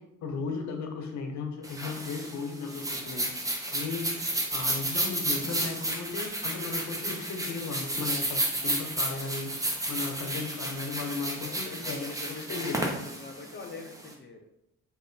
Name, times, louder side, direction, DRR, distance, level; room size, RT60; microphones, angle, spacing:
voice 1, 0.0-3.3 3.7-4.2 4.5-9.5 9.9-12.8, left 4 dB, 65° left, 3 dB, 0.8 m, -36 dB
sound 1, 1.6-14.1, right 1 dB, 10° right, 0.7 m, -32 dB
voice 2, 9.6-10.1 11.3-14.4, left 4 dB, 35° left, 2 dB, 0.5 m, -44 dB
3.2 x 2.5 x 3.9 m, 0.82 s
cardioid pair, 90°, 30 cm